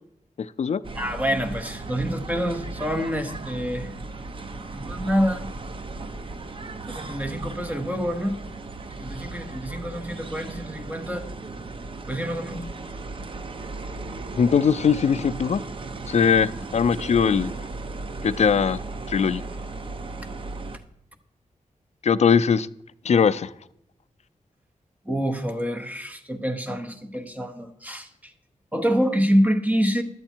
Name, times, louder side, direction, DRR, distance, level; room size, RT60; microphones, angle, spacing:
sound 1, 0.8-20.8, right 3 dB, 40° right, 0.6 m, -36 dB
voice 1, 0.9-3.9 4.7-5.4 6.9-8.4 8.9-11.3 12.1-12.6 25.0-28.3 28.7-30.0, equal, 10° right, 4 dB, 0.9 m, -26 dB
voice 2, 14.4-15.6 16.1-17.5 18.2-18.8 19.1-19.4 22.0-22.7 23.1-23.5, left 6 dB, 55° left, 15 dB, 0.4 m, -20 dB
11.5 x 8.0 x 4.4 m, 0.75 s
wide cardioid pair, 155°, 14 cm